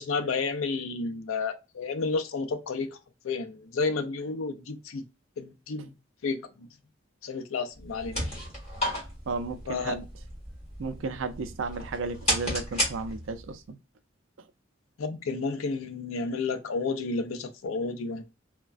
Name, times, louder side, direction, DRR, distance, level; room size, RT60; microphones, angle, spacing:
voice 1, 0.0-3.0 3.2-5.0 5.4-5.9 6.2-6.7 7.2-8.2 9.7-10.0 15.0-18.2, left 4 dB, 90° left, 0.5 m, -31 dB
sound 1, 7.8-13.5, equal, 30° left, 1.4 m, -33 dB
voice 2, 9.3-10.0 10.8-13.8, right 4 dB, 70° right, 0.4 m, -34 dB
3.2 x 2.1 x 2.4 m
head